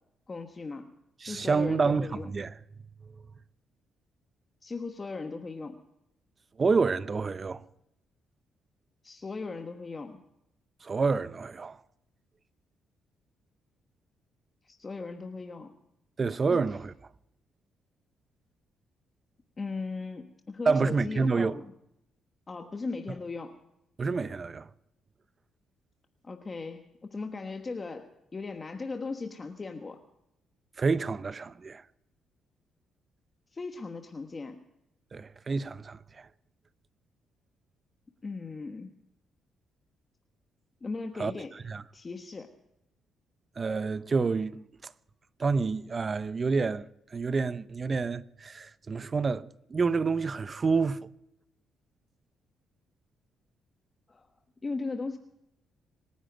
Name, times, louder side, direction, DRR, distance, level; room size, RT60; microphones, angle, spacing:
voice 1, 0.3-0.9 1.3-2.3 4.6-5.8 9.0-10.2 14.6-15.8 16.5-16.6 19.6-21.7 22.5-23.6 26.2-30.0 33.5-34.6 38.2-38.9 40.8-41.5 41.9-42.5 54.1-54.3 54.6-55.2, left 3 dB, 30° left, 1.2 m, -38 dB
voice 2, 1.2-2.5 6.6-7.6 10.8-11.8 16.2-16.9 20.7-21.6 24.0-24.7 30.8-31.8 35.1-36.3 41.2-41.3 41.6-41.8 43.6-44.9 45.4-46.9 47.1-51.0, right 4 dB, 35° right, 0.7 m, -28 dB
26.5 x 10.0 x 5.1 m
cardioid pair, 90°, 0 cm